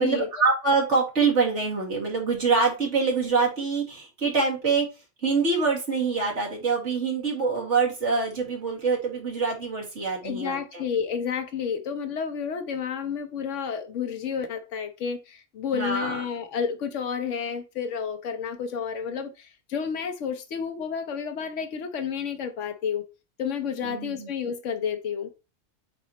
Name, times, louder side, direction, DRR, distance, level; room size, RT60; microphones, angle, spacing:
voice 1, 0.0-4.9 5.2-10.8 15.7-16.2 23.8-24.3, right 4 dB, 75° right, 2.3 m, -25 dB
voice 2, 10.2-23.0 23.4-25.3, left 7 dB, 85° left, 1.2 m, -30 dB
8.2 x 2.9 x 4.1 m
omnidirectional pair, 1.2 m